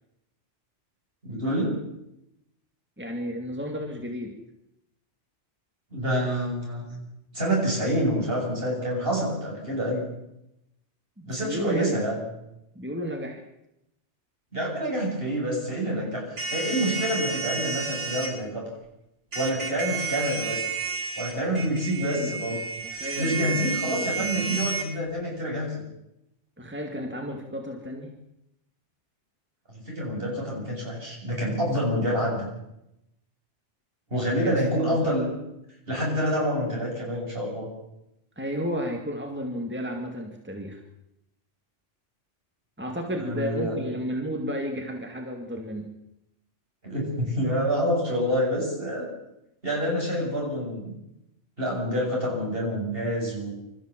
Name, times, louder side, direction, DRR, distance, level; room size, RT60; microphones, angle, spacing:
voice 1, 1.2-1.7 5.9-7.0 7.3-10.0 11.2-12.2 14.5-18.7 19.3-20.6 21.2-22.6 23.2-25.8 29.7-32.5 34.1-35.2 35.9-37.7 43.2-43.8 46.8-49.1 49.6-50.9 51.6-53.5, equal, 50° right, -2 dB, 8.2 m, -27 dB
voice 2, 3.0-4.4 11.2-12.0 12.7-13.4 22.0-22.4 22.8-24.7 26.6-28.1 34.4-35.1 38.4-40.8 42.8-45.9, equal, 10° right, 2 dB, 2.3 m, -33 dB
sound 1, 16.4-18.3 19.3-24.9, right 4 dB, 75° right, 3.5 m, -31 dB
25.5 x 14.0 x 7.6 m, 0.85 s
omnidirectional pair, 1.2 m